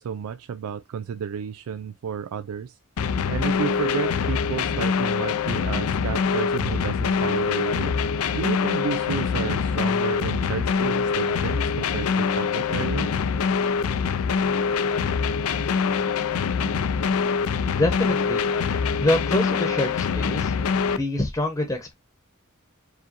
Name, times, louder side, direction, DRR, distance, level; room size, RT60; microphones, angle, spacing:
voice 1, 0.0-2.8 3.3-8.0 8.3-13.1, right 7 dB, 80° right, 0.3 m, -32 dB
sound 1, 3.0-21.0, left 5 dB, 85° left, 0.4 m, -24 dB
voice 2, 17.7-20.6 20.9-21.9, left 1 dB, 15° left, 0.8 m, -26 dB
4.8 x 2.5 x 2.8 m
head